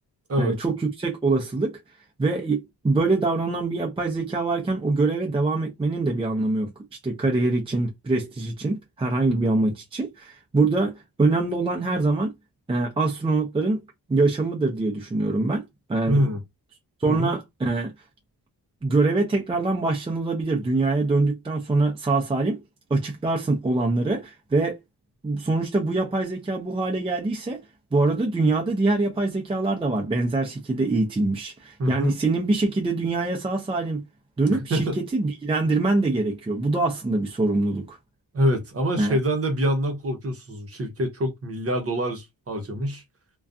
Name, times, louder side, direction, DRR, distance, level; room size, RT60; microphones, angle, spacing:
voice 1, 0.4-1.8 2.2-6.7 7.0-12.3 12.7-13.8 14.1-15.6 15.9-16.2 17.0-17.9 18.8-22.6 22.9-24.8 25.2-27.6 27.9-34.0 34.4-34.9 35.1-38.0 39.0-39.2, right 3 dB, 15° right, 0.5 m, -24 dB
voice 2, 16.1-16.4 17.0-17.3 31.8-32.1 34.5-35.0 38.3-43.0, equal, 35° right, 0.8 m, -25 dB
2.5 x 2.3 x 2.4 m
cardioid pair, 110°, 39 cm